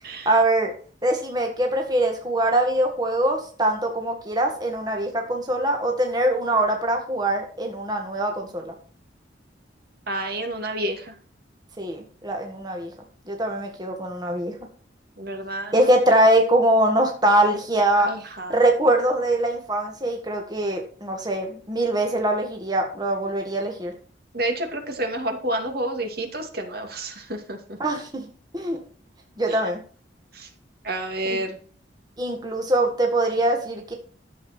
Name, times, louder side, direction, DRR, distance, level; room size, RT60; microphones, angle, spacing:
voice 1, 0.3-0.7 1.0-8.7 11.8-12.9 13.3-14.5 15.7-18.1 18.5-23.9 27.8-28.3 28.5-28.8 29.4-29.8 31.3-31.4 32.2-33.9, right 1 dB, 20° right, 2 dB, 1.7 m, -23 dB
voice 2, 10.1-11.1 15.2-15.7 18.0-18.6 24.3-27.6 29.5-29.6 30.3-30.5 30.8-31.6, right 1 dB, 55° right, 4 dB, 2.5 m, -29 dB
13.0 x 7.5 x 4.4 m, 0.43 s
head